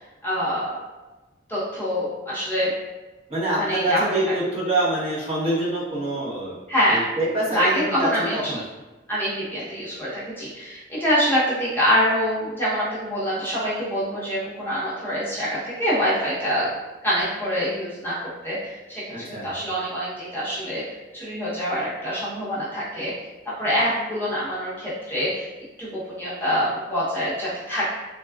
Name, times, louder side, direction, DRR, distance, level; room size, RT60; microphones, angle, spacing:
voice 1, 0.2-0.7 1.5-2.7 3.5-4.1 6.7-7.1 7.5-8.6 9.1-18.1 18.4-20.8 21.1-23.1 23.6-25.5 25.8-27.9, equal, 10° left, -9 dB, 0.7 m, -25 dB
voice 2, 3.3-6.6 6.9-8.6 19.1-19.5, right 1 dB, 35° right, -7 dB, 0.8 m, -26 dB
3.4 x 2.2 x 2.3 m, 1.1 s
head